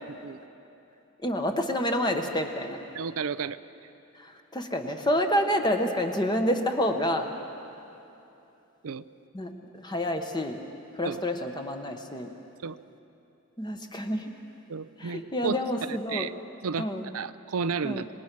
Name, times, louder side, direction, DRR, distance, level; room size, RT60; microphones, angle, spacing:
voice 1, 0.1-0.4 2.9-3.6 8.8-9.0 11.0-11.2 12.6-12.8 14.7-15.6 15.9-16.3 16.6-16.9 17.1-18.0, right 5 dB, 75° right, 13 dB, 0.5 m, -32 dB
voice 2, 1.2-2.8 4.2-7.3 9.3-10.6 11.0-12.3 13.6-14.3 15.0-16.3 16.8-17.1 17.8-18.0, equal, 20° left, 4 dB, 1.0 m, -28 dB
26.0 x 19.5 x 6.1 m, 2.9 s
head